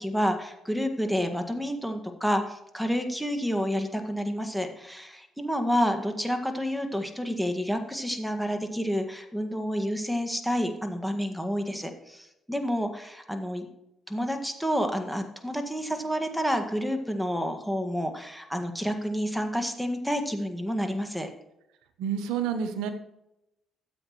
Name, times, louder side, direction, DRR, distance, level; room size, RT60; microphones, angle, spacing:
voice 1, 0.0-13.7 14.1-21.3, equal, ahead, 6 dB, 1.7 m, -29 dB
voice 2, 22.0-22.9, right 7 dB, 90° right, 8 dB, 1.0 m, -29 dB
14.0 x 7.9 x 3.1 m, 0.84 s
supercardioid pair, 65°, 0 cm